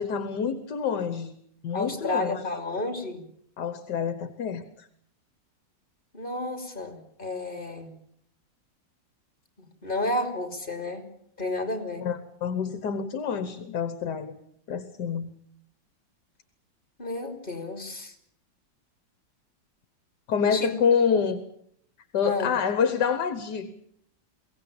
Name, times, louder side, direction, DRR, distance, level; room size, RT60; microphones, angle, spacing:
voice 1, 0.0-1.3 1.6-2.4 3.6-4.9 12.0-14.3 14.7-15.3 20.3-21.4 22.1-23.7, left 6 dB, 65° left, 11 dB, 1.8 m, -27 dB
voice 2, 1.7-3.2 6.1-7.9 9.6-11.0 11.4-12.1 17.0-18.1 20.5-20.7 22.2-22.6, left 2 dB, 25° left, 6 dB, 3.2 m, -31 dB
22.5 x 17.5 x 8.8 m, 0.69 s
omnidirectional pair, 2.0 m